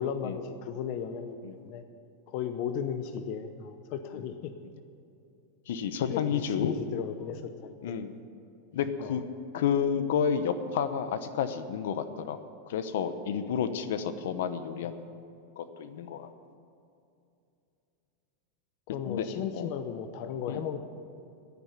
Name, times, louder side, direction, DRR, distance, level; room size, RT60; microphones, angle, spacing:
voice 1, 0.0-1.4 1.6-1.8 2.3-4.5 6.1-8.0 9.0-9.2 18.9-20.8, left 8 dB, 40° left, 8 dB, 0.7 m, -35 dB
voice 2, 5.7-6.7 7.8-8.1 8.7-9.2 9.5-12.4 12.7-15.0 15.6-16.3 19.1-19.3 19.5-19.7 20.5-20.6, left 7 dB, 70° left, 11 dB, 0.9 m, -30 dB
10.5 x 9.8 x 9.0 m, 2.6 s
supercardioid pair, 170°, 0 cm